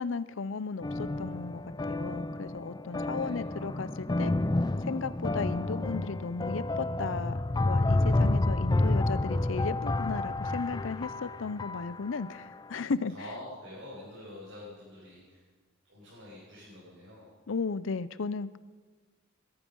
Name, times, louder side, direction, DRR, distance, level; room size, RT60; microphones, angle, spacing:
voice 1, 0.0-4.3 4.8-7.4 7.6-13.1 17.5-18.6, left 4 dB, 70° left, 16 dB, 0.6 m, -35 dB
sound 1, 0.8-12.3, left 2 dB, 20° left, 0.4 m, -30 dB
voice 2, 3.1-3.4 13.1-15.4 15.9-17.3, left 1 dB, 65° right, -7 dB, 5.9 m, -46 dB
20.5 x 13.0 x 5.4 m, 1.4 s
head